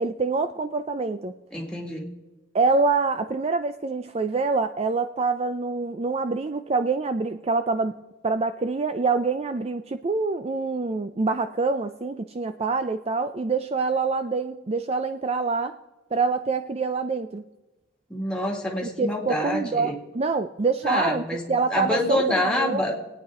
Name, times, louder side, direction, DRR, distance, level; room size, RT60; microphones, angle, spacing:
voice 1, 0.0-1.3 2.5-7.9 8.2-15.8 16.1-17.4 18.8-22.8, right 4 dB, 30° right, 10 dB, 0.4 m, -26 dB
voice 2, 1.5-2.1 18.1-20.0 20.8-22.9, left 1 dB, 5° left, 0 dB, 2.1 m, -27 dB
26.5 x 9.4 x 3.7 m, 1.1 s
head